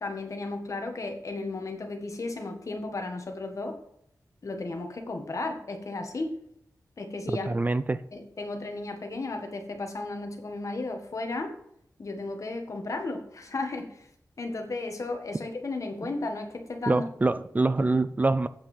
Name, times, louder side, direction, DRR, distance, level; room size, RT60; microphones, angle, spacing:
voice 1, 0.0-3.8 4.4-6.3 7.0-7.7 8.1-11.5 12.0-14.1 14.4-17.1, left 2 dB, 55° left, 1.6 m, -34 dB
voice 2, 7.5-8.0 16.9-18.5, right 3 dB, 25° right, 0.4 m, -25 dB
8.6 x 5.7 x 7.3 m
wide cardioid pair, 125°, 6 cm